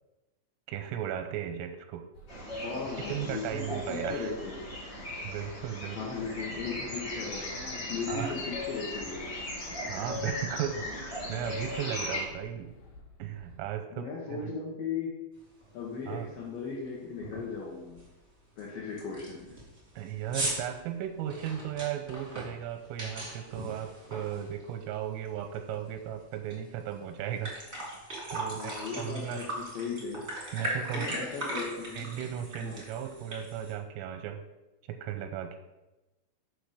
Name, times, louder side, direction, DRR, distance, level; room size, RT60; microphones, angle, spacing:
voice 1, 0.7-2.0 3.1-4.3 5.2-6.0 8.1-8.4 9.9-12.7 13.2-14.5 16.1-16.3 20.0-27.5 28.3-29.4 30.5-31.1 32.0-34.4 34.9-35.6, right 10 dB, 90° right, 6 dB, 3.2 m, -36 dB
sound 1, 2.1-13.6, equal, 55° left, 3.3 m, -52 dB
sound 2, 2.3-12.2, left 1 dB, 35° left, 1.9 m, -38 dB
voice 2, 2.6-4.6 6.0-9.3 13.9-15.1 15.7-18.0 18.6-19.6 28.6-30.2 30.9-32.1 32.6-32.8, left 5 dB, 85° left, -3 dB, 2.0 m, -37 dB
sound 3, 15.6-15.7 16.1-16.4 16.7-16.8 17.2-17.5 18.0-18.1 18.6-18.7 19.0-24.9 25.2-26.5 26.9-27.0 27.3-33.7, right 1 dB, 35° right, 0.9 m, -38 dB
6.9 x 6.5 x 4.9 m, 1.0 s
omnidirectional pair, 5.8 m